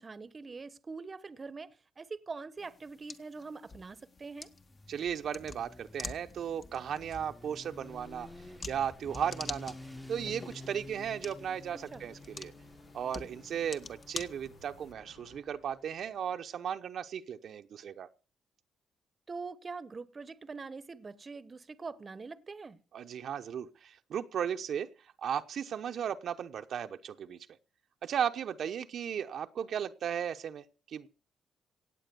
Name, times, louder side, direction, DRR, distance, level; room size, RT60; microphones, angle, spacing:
voice 1, 0.0-4.5 11.9-12.1 19.3-22.8, right 4 dB, 30° right, 1.0 m, -44 dB
sound 1, 2.6-14.9, left 4 dB, 35° left, 1.4 m, -47 dB
Motorcycle, 4.4-16.1, left 1 dB, 10° left, 1.1 m, -51 dB
voice 2, 4.9-8.3 8.7-9.7 10.1-12.5 12.9-18.1 22.9-24.9 25.2-27.4 28.0-31.1, right 8 dB, 65° right, 0.9 m, -36 dB
sound 2, 7.6-15.4, left 4 dB, 90° left, 2.7 m, -59 dB
17.0 x 8.7 x 6.8 m
cardioid pair, 90°, 0 cm